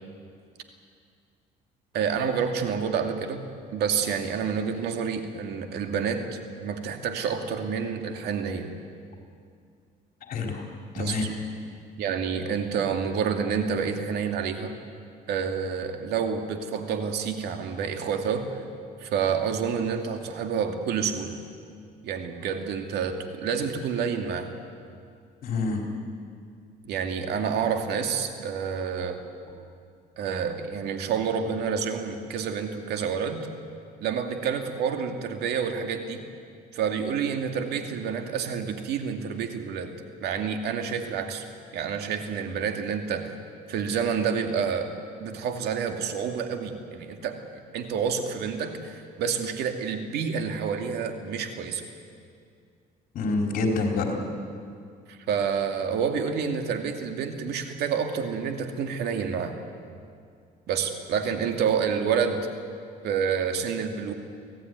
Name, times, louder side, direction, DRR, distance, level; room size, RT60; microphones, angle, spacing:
voice 1, 1.9-3.4 3.7-6.2 6.6-8.7 10.9-11.2 12.0-14.7 15.3-18.6 19.0-21.4 22.0-24.5 26.8-29.2 30.2-33.5 34.0-36.2 36.7-39.9 40.2-41.4 41.7-43.3 43.7-44.9 45.2-47.4 47.7-51.9 55.1-59.6 60.7-62.5 63.0-64.1, right 6 dB, 75° right, 5 dB, 2.4 m, -28 dB
voice 2, 10.3-10.6 10.9-11.3 25.4-25.8 53.1-54.2, left 3 dB, 60° left, 2 dB, 4.6 m, -27 dB
25.5 x 16.5 x 9.5 m, 2.3 s
cardioid pair, 110°, 17 cm